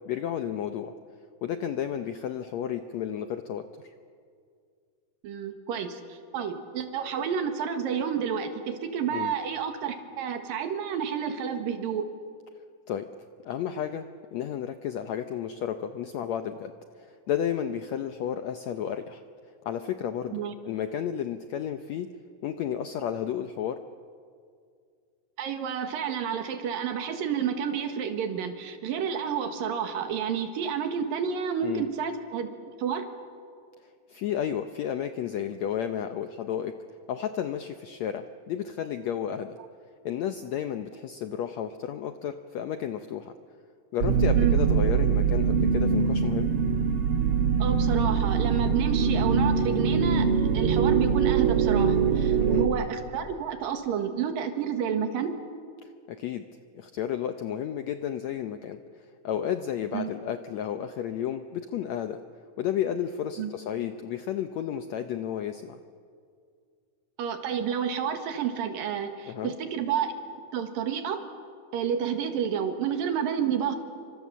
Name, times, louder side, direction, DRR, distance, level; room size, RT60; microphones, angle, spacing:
voice 1, 0.1-0.9 1.4-3.9 9.1-9.3 12.9-13.1 13.4-14.1 14.3-16.7 17.0-19.2 19.6-22.1 22.4-23.8 31.6-31.9 34.1-36.8 37.1-39.6 40.0-43.3 43.9-46.5 52.4-52.7 55.8-56.4 56.7-58.8 59.2-62.2 62.6-65.8 69.3-69.5, left 9 dB, 75° left, 8 dB, 1.6 m, -32 dB
voice 2, 5.2-12.1 20.3-20.5 25.4-32.5 32.8-33.1 44.3-44.6 47.6-50.3 50.5-55.4 59.9-60.1 63.4-63.5 67.2-70.1 70.5-71.2 71.7-73.8, right 7 dB, 75° right, 7 dB, 3.4 m, -30 dB
sound 1, 44.0-52.7, right 6 dB, 50° right, 1.9 m, -23 dB
28.5 x 25.0 x 7.4 m, 2.2 s
omnidirectional pair, 4.1 m